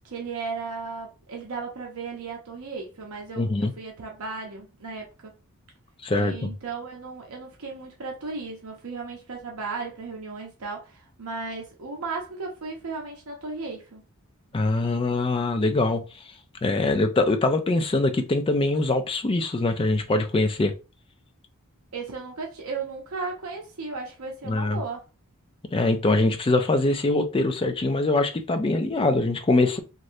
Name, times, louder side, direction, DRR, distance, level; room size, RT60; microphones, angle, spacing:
voice 1, 0.0-5.3 6.1-14.0 21.9-25.0, right 4 dB, 75° right, 0.7 m, -35 dB
voice 2, 3.4-3.7 6.0-6.5 14.5-16.0 16.6-20.7 24.5-24.8 25.7-29.8, left 2 dB, 25° left, 0.4 m, -23 dB
3.1 x 2.5 x 2.6 m
head